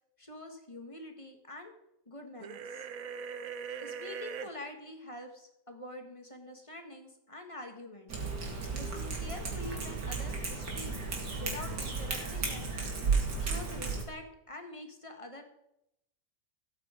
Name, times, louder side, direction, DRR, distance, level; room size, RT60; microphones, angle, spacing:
voice 1, 0.2-1.7 2.0-2.9 3.8-11.0 11.4-12.8 13.4-15.4, left 1 dB, 20° left, 4 dB, 1.6 m, -46 dB
sound 1, 2.4-4.5, right 6 dB, 60° right, 1.1 m, -40 dB
Cat, 8.1-14.0, right 4 dB, 80° right, 3.0 m, -34 dB
15.0 x 8.6 x 5.1 m, 0.80 s
omnidirectional pair, 1.8 m